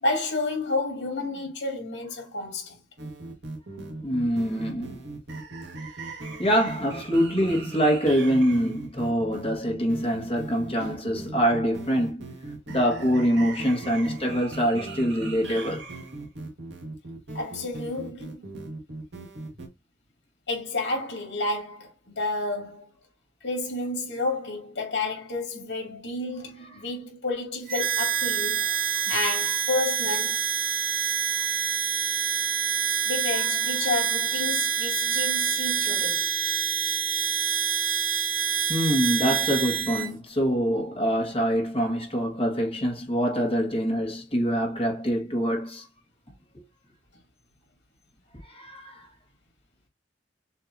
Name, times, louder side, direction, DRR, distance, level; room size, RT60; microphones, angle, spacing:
voice 1, 0.0-2.8 9.3-9.5 10.8-11.0 17.3-18.5 20.5-22.9 23.4-28.7 29.1-30.4 33.0-36.3, left 2 dB, 75° left, 2.3 m, -30 dB
sound 1, 3.0-19.7, right 2 dB, 75° right, 1.5 m, -39 dB
voice 2, 4.0-5.1 6.4-12.2 12.7-15.9 29.0-29.1 31.4-31.5 38.7-45.9 48.4-49.1, equal, 35° left, 1.6 m, -25 dB
Harmonica, 27.7-40.1, right 8 dB, 50° right, 1.2 m, -26 dB
6.5 x 2.8 x 2.6 m
head